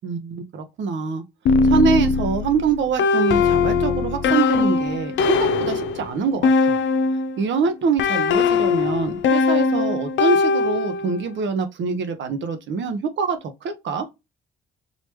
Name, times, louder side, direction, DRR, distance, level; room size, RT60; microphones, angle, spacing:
voice 1, 0.0-1.2 1.6-6.8 7.4-14.1, right 5 dB, 65° right, 1.1 m, -25 dB
sound 1, 1.5-7.4 8.0-11.2, left 4 dB, 75° left, 0.6 m, -20 dB
4.1 x 3.1 x 3.0 m
cardioid pair, 90°, 20 cm